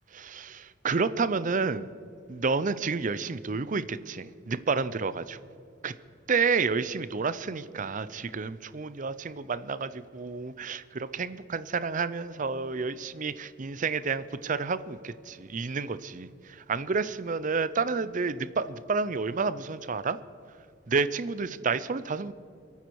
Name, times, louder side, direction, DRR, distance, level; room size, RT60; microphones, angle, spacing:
voice 1, 0.1-1.8 2.3-5.4 5.8-5.9 6.3-16.3 16.7-20.2 20.9-22.3, right 4 dB, 40° right, 14 dB, 0.6 m, -30 dB
27.0 x 9.4 x 4.7 m, 2.5 s
head